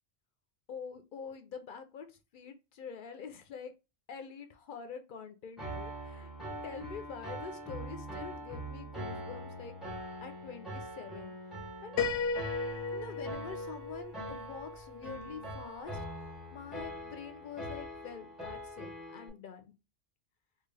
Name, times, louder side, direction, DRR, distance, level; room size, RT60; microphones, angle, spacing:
voice 1, 0.7-3.7 4.1-6.3 6.6-9.8 10.2-12.0 12.9-19.7, left 6 dB, 60° left, 7 dB, 0.6 m, -46 dB
Piano, 5.6-19.3, right 1 dB, ahead, 0.9 m, -43 dB
Piano 2, 12.0-15.7, left 4 dB, 85° left, 0.9 m, -36 dB
3.6 x 2.4 x 3.1 m, 0.28 s
omnidirectional pair, 1.2 m